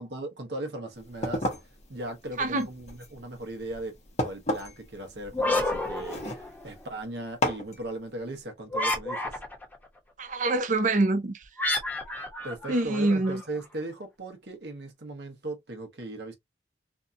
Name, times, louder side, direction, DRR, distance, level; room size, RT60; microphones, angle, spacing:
voice 1, 0.0-1.5 1.9-9.4 12.4-16.4, right 1 dB, 70° right, 0.9 m, -38 dB
sound 1, 1.0-6.9 7.4-7.8, left 1 dB, 40° left, 0.8 m, -34 dB
sound 2, 5.3-6.8 8.7-9.8 11.6-13.4, left 2 dB, 10° left, 0.9 m, -30 dB
voice 2, 10.2-11.4 12.7-13.4, right 2 dB, 45° right, 0.6 m, -25 dB
2.7 x 2.3 x 2.6 m
head